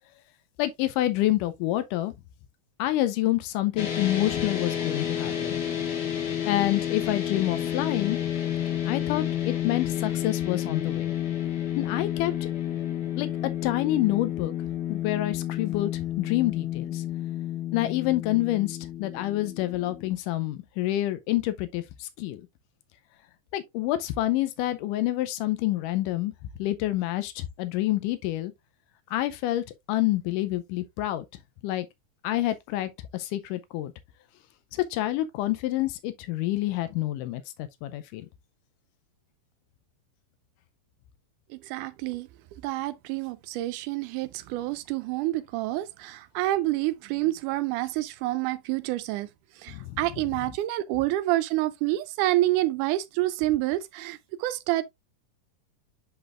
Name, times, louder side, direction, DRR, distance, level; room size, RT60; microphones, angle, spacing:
voice 1, 0.6-2.1 2.8-5.6 6.4-8.2 8.9-11.1 11.8-12.5 13.2-13.3 13.6-14.5 14.9-17.0 17.7-22.5 23.5-26.3 26.6-28.5 29.1-31.3 31.6-31.9 32.2-33.9 34.7-38.3 49.7-50.0, left 15 dB, 90° left, 2.2 m, -28 dB
sound 1, 3.8-20.1, left 10 dB, 50° left, 1.3 m, -30 dB
voice 2, 41.6-49.3 49.6-54.8, right 16 dB, 80° right, 2.0 m, -28 dB
10.5 x 4.0 x 2.4 m
omnidirectional pair, 3.7 m